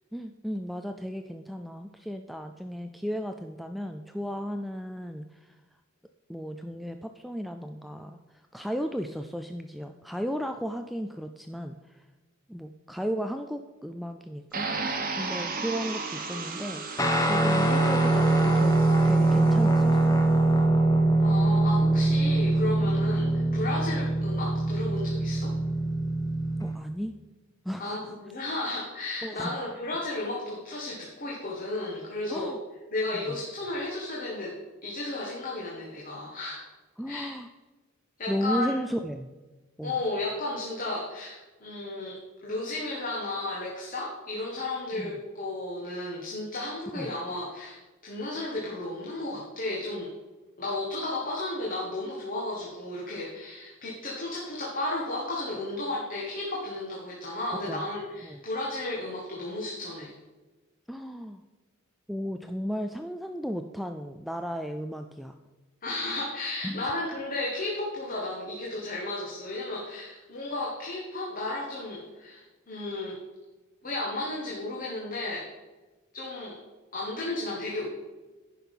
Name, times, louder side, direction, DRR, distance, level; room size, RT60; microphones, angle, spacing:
voice 1, 0.1-5.6 6.3-12.0 12.5-14.7 15.2-18.8 19.0-20.2 26.6-27.1 27.6-28.0 29.2-29.5 32.3-32.6 33.1-33.4 37.0-37.5 38.3-39.3 39.8-40.0 45.0-45.1 46.9-47.1 57.5-57.8 58.2-58.4 60.9-61.4 62.1-65.4 66.6-66.8, equal, ahead, 6 dB, 0.3 m, -34 dB
sound 1, 14.5-19.5, right 4 dB, 40° right, 1.2 m, -35 dB
Guitar, 17.0-26.7, right 2 dB, 15° left, 1.0 m, -23 dB
voice 2, 21.2-25.5 27.8-32.5 32.9-34.5 34.8-36.6 37.1-37.4 38.2-38.7 39.8-50.1 50.6-60.1 65.8-73.2 73.8-75.5 76.1-76.6 76.9-77.9, left 2 dB, 40° left, -3 dB, 1.6 m, -33 dB
10.5 x 5.8 x 5.5 m, 1.2 s
head